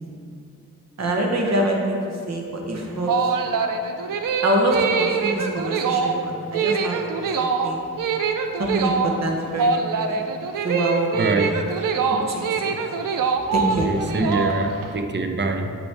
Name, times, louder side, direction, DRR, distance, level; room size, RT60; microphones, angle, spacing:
voice 1, 1.0-2.0 2.3-3.1 4.4-7.0 7.4-7.8 8.6-9.7 10.1-10.2 10.6-11.1 12.1-12.9 13.5-13.9, right 1 dB, 55° right, 1.0 m, -25 dB
sound 1, 2.8-14.9, right 5 dB, 80° right, 0.5 m, -24 dB
voice 2, 11.1-11.5 13.9-15.8, right 2 dB, 35° right, 0.5 m, -24 dB
8.5 x 4.4 x 3.4 m
wide cardioid pair, 85°, 32 cm